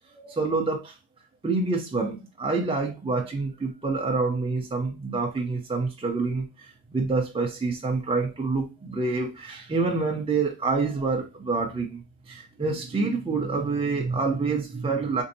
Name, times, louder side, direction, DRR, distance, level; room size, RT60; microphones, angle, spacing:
voice 1, 0.2-1.0 1.4-15.2, right 3 dB, 15° right, 0.4 m, -27 dB
4.3 x 2.6 x 2.6 m
wide cardioid pair, 150°, 50 cm